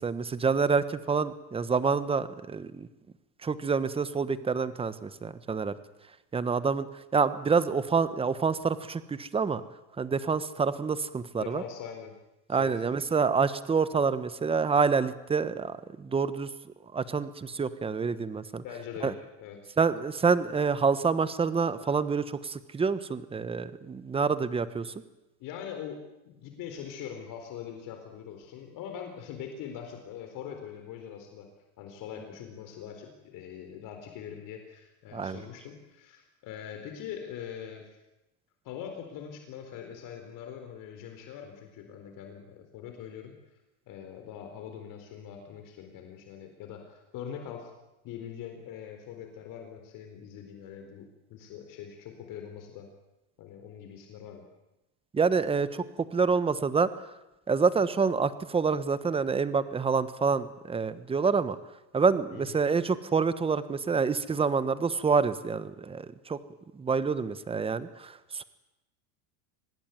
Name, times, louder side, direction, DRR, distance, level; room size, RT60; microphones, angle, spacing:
voice 1, 0.0-2.9 3.4-5.7 6.3-9.6 10.0-11.6 12.5-18.6 19.0-19.1 19.8-24.9 35.1-35.4 55.1-55.8 56.1-56.9 57.5-61.6 61.9-66.4 66.7-68.4, right 5 dB, 15° right, 14 dB, 1.2 m, -27 dB
voice 2, 11.4-12.1 12.5-12.8 18.6-19.1 19.4-19.6 25.4-31.5 31.8-37.9 38.6-43.3 43.9-47.7 48.0-52.9 53.4-54.4 62.3-62.6, left 8 dB, 50° left, 5 dB, 4.3 m, -42 dB
25.0 x 20.0 x 9.4 m, 0.95 s
supercardioid pair, 145°, 42 cm